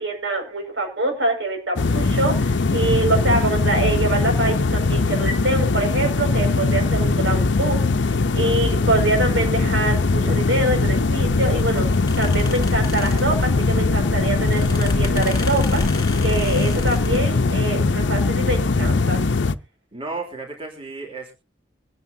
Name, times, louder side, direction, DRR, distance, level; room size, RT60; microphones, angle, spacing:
voice 1, 0.0-19.2, right 2 dB, 85° right, 2 dB, 6.0 m, -25 dB
sound 1, 1.8-19.5, left 3 dB, 85° left, 0.7 m, -20 dB
sound 2, 10.7-17.2, left 1 dB, 25° left, 3.1 m, -33 dB
voice 2, 19.9-21.3, right 3 dB, 30° right, 1 dB, 3.8 m, -33 dB
24.5 x 9.4 x 2.8 m, 0.30 s
head